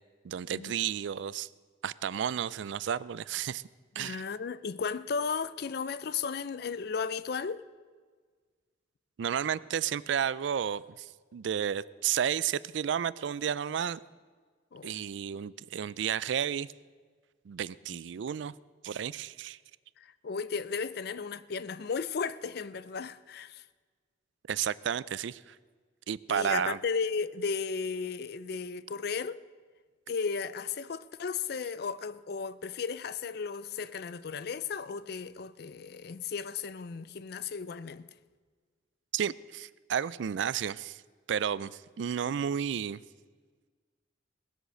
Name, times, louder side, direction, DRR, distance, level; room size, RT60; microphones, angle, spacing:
voice 1, 0.2-1.5 1.8-3.6 4.0-4.2 9.2-14.0 14.8-16.7 17.5-18.5 18.8-19.6 24.5-25.6 26.1-26.8 39.1-41.0 41.3-43.0, right 8 dB, 70° right, 0.4 m, -32 dB
voice 2, 4.0-7.6 14.7-15.0 17.9-18.0 20.0-23.6 26.3-29.4 30.1-38.1 41.6-41.7, left 5 dB, 55° left, 0.4 m, -35 dB
18.0 x 8.1 x 6.3 m
head